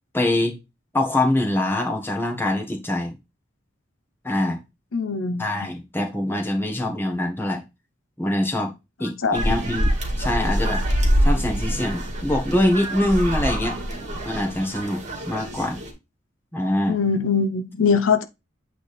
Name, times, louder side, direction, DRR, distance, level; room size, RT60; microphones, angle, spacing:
voice 1, 0.1-0.5 0.9-3.1 4.2-4.6 5.4-7.6 8.2-8.7 9.0-9.9 10.2-10.8 11.2-13.7 14.2-15.0 15.3-15.8 16.5-17.0, left 1 dB, 10° left, 1.4 m, -24 dB
voice 2, 4.9-5.4 9.0-9.4 16.9-18.2, left 5 dB, 75° left, 0.7 m, -22 dB
sound 1, 9.3-15.9, equal, 35° right, 2.0 m, -25 dB
8.6 x 3.4 x 4.2 m
head